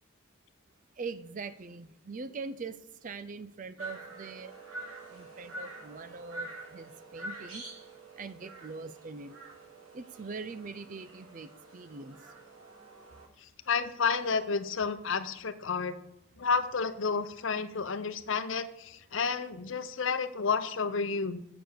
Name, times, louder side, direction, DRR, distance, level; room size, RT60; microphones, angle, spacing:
voice 1, 1.0-2.8 3.0-4.5 5.1-7.6 8.2-9.3 9.9-12.2, right 4 dB, 40° right, 14 dB, 0.4 m, -42 dB
sound 1, 3.8-13.2, right 2 dB, 90° right, 3.6 m, -46 dB
voice 2, 13.4-15.9 16.4-21.4, left 5 dB, 70° left, 11 dB, 0.7 m, -31 dB
7.6 x 6.9 x 6.7 m, 0.79 s
head